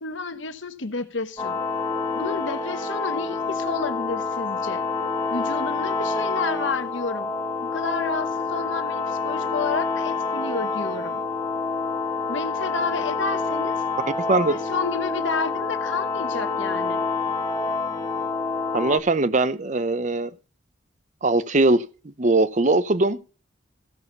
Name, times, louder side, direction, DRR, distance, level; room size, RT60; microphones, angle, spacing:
voice 1, 0.0-1.6 2.1-4.9 5.3-7.3 7.6-11.2 12.3-13.8 14.3-17.0, left 4 dB, 70° left, 1.2 m, -31 dB
sound 1, 1.4-19.0, left 4 dB, 20° left, 1.3 m, -27 dB
voice 2, 18.7-20.3 21.2-23.2, right 2 dB, 40° right, 0.7 m, -21 dB
15.5 x 6.3 x 5.4 m
head